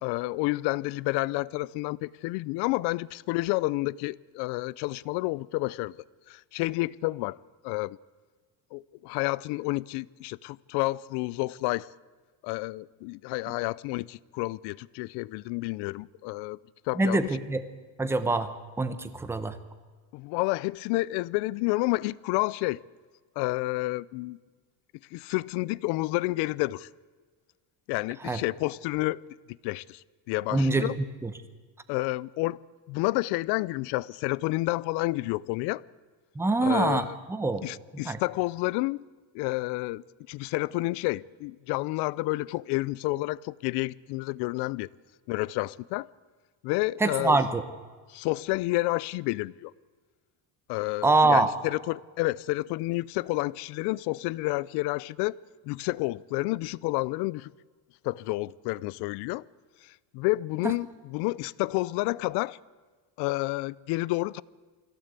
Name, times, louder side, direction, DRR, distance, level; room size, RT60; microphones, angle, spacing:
voice 1, 0.0-5.9 6.3-7.4 7.6-8.0 8.7-11.9 12.4-16.6 16.9-17.3 20.1-22.8 23.4-24.4 25.1-26.9 27.9-29.2 29.6-30.9 31.9-32.6 32.9-35.8 36.6-37.2 37.6-39.0 39.3-44.9 45.3-46.1 46.6-47.4 48.1-49.7 50.7-55.4 55.6-57.5 58.0-59.4 59.8-62.6 63.2-64.4, left 21 dB, 75° left, 0.6 m, -30 dB
voice 2, 16.9-17.6 18.0-18.5 18.8-19.6 28.2-28.4 30.5-30.9 31.2-31.3 36.3-37.6 38.0-38.2 47.0-47.6 51.0-51.5 60.6-60.7, right 3 dB, 5° right, 0.9 m, -24 dB
22.5 x 16.5 x 8.2 m
cardioid pair, 170°, 40 cm